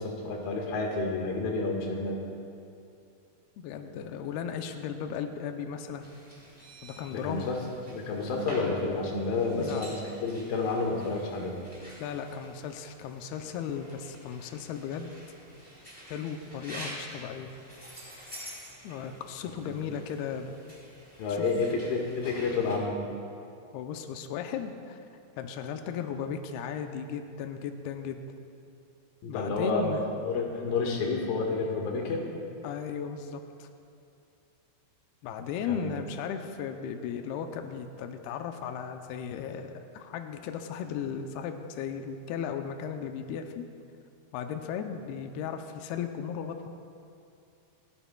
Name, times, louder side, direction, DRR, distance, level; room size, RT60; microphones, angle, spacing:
voice 1, 0.0-2.2 7.1-7.6 7.9-11.6 19.7-19.8 21.2-23.0 29.2-29.9 30.2-32.2 35.7-35.9, left 3 dB, 65° left, 0 dB, 3.0 m, -30 dB
voice 2, 3.6-6.1 6.8-7.5 9.6-9.9 12.0-15.1 16.1-17.5 18.8-20.5 21.3-21.4 23.7-25.0 25.4-28.2 29.3-30.0 32.6-33.7 35.2-43.7 44.3-46.7, left 7 dB, 90° left, 6 dB, 2.2 m, -36 dB
sound 1, 6.0-22.8, equal, 5° right, 2.5 m, -48 dB
29.5 x 11.5 x 2.3 m, 2.5 s
omnidirectional pair, 5.3 m